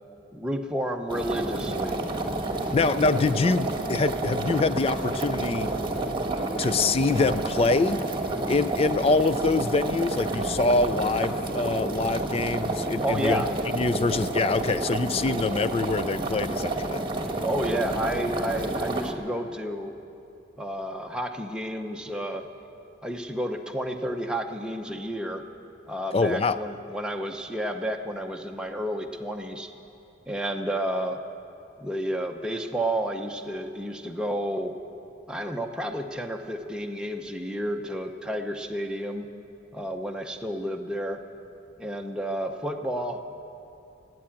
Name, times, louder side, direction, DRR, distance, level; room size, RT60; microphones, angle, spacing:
voice 1, 0.3-2.0 13.0-13.5 17.4-19.9 20.6-22.5 23.0-25.4 25.9-29.7 30.3-31.2 31.8-34.7 35.3-39.3 39.7-41.2 41.8-43.2, equal, 5° right, 2 dB, 0.7 m, -31 dB
sound 1, 1.1-19.1, right 2 dB, 25° right, 1.2 m, -29 dB
voice 2, 2.7-5.7 6.6-8.0 8.5-13.4 13.7-17.0 26.1-26.6, left 3 dB, 30° left, 14 dB, 0.4 m, -25 dB
16.5 x 9.4 x 8.7 m, 2.7 s
head